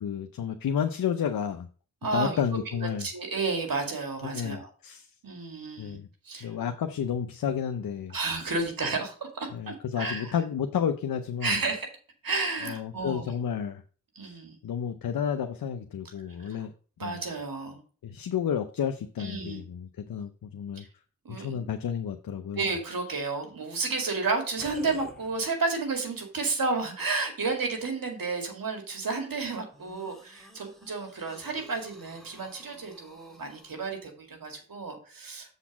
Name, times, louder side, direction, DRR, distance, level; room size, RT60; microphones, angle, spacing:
voice 1, 0.0-1.7 2.1-3.1 4.2-5.1 5.8-6.1 6.4-8.1 9.5-11.6 12.6-13.8 14.2-14.3 14.6-16.7 17.0-17.2 18.0-20.8 21.3-22.6, left 8 dB, 80° left, 7 dB, 0.6 m, -31 dB
voice 2, 2.0-2.4 3.0-4.7 5.2-6.0 6.2-6.5 8.1-10.4 11.4-11.9 12.2-13.3 14.2-14.6 16.4-16.7 17.0-17.8 19.2-19.6 20.8-20.9 21.2-21.7 22.5-35.5, right 3 dB, 80° right, 4 dB, 2.0 m, -32 dB
sound 1, 24.6-25.8 26.5-26.6 29.7-33.7, left 1 dB, ahead, 1.8 m, -51 dB
7.2 x 4.1 x 5.9 m, 0.40 s
cardioid pair, 50°, 34 cm